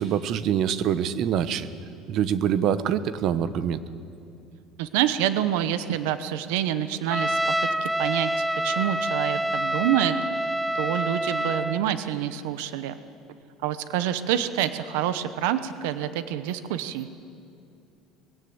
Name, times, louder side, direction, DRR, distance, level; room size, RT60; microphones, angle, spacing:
voice 1, 0.0-1.7 2.1-3.8, right 9 dB, 50° right, 14 dB, 0.9 m, -25 dB
voice 2, 4.8-13.0 13.6-17.1, right 11 dB, 85° right, 12 dB, 0.9 m, -27 dB
Trumpet, 7.1-11.8, right 1 dB, 5° right, 0.4 m, -27 dB
20.0 x 17.0 x 8.0 m, 2.5 s
cardioid pair, 135°, 0 cm